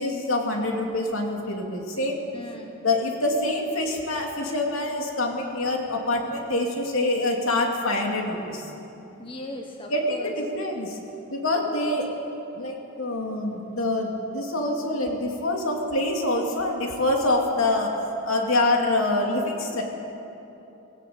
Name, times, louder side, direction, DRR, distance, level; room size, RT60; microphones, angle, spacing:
voice 1, 0.0-2.2 2.8-8.7 9.9-11.0 11.3-12.1 12.6-17.9 18.2-19.8, left 2 dB, 65° left, 1 dB, 2.8 m, -25 dB
voice 2, 2.3-2.7 9.2-10.3, left 1 dB, 25° left, 2 dB, 1.2 m, -38 dB
18.0 x 17.0 x 8.8 m, 3.0 s
head